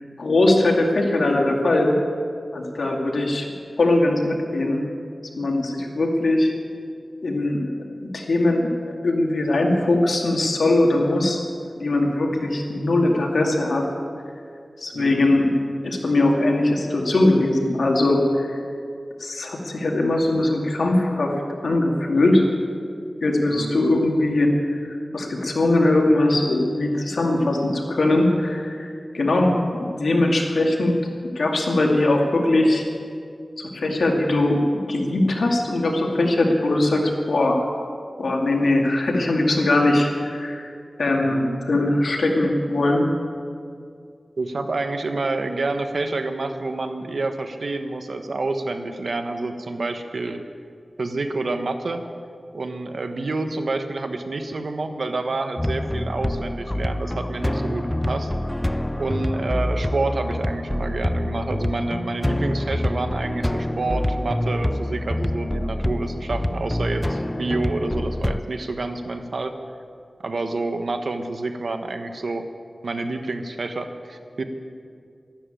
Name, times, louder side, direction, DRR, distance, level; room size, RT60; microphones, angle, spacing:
voice 1, 0.2-2.0 2.5-3.5 3.8-4.8 5.4-6.5 7.2-7.7 8.0-11.4 11.7-13.9 14.8-15.5 15.8-18.6 19.2-21.3 21.6-22.4 23.2-24.8 25.1-30.9 31.3-32.8 33.6-37.7 38.2-40.7 41.0-43.0, left 2 dB, 90° left, 0 dB, 2.4 m, -20 dB
voice 2, 14.9-15.3 23.5-23.8 41.2-41.6 44.4-50.4 51.0-52.0 52.5-58.3 59.0-69.6 70.2-72.5 72.8-74.4, right 2 dB, 80° right, 7 dB, 1.2 m, -28 dB
sound 1, 55.6-68.4, left 1 dB, 15° left, 0.4 m, -26 dB
13.0 x 12.0 x 9.0 m, 2.3 s
wide cardioid pair, 65°, 0 cm